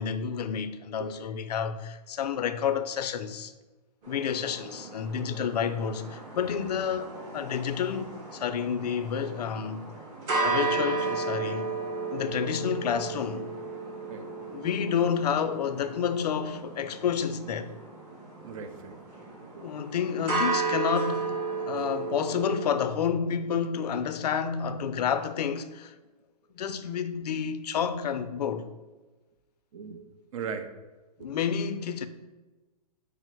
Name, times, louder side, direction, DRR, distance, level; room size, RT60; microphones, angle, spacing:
voice 1, 0.0-3.5 4.1-9.9 10.4-11.7 12.1-13.5 14.5-17.7 19.6-25.9 26.5-28.7 31.2-32.1, left 7 dB, 70° left, 0.4 m, -30 dB
sound 1, 4.0-22.7, right 4 dB, 30° right, 1.1 m, -34 dB
voice 2, 18.4-19.0 19.5-19.6 29.7-30.0 30.3-30.7 31.2-31.4, right 6 dB, 55° right, 0.6 m, -38 dB
5.1 x 2.0 x 4.4 m
hypercardioid pair, 140°, 21 cm